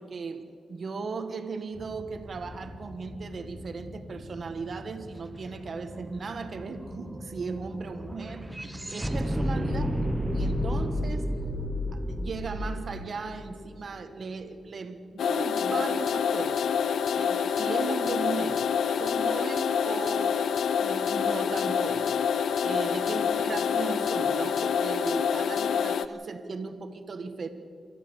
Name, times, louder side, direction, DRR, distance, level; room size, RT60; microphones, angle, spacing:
voice 1, 0.0-8.5 8.9-9.9 10.3-11.3 11.9-16.7 17.2-20.4 20.8-22.1 22.6-27.5, right 4 dB, 50° right, 8 dB, 1.6 m, -37 dB
sound 1, 1.7-12.0, equal, 30° left, 5.0 m, -45 dB
sound 2, 5.6-5.7 6.0-14.2, equal, 5° right, 1.2 m, -31 dB
sound 3, 15.2-26.1, left 7 dB, 80° left, 0.7 m, -27 dB
27.0 x 14.0 x 7.2 m, 2.3 s
wide cardioid pair, 110°, 0 cm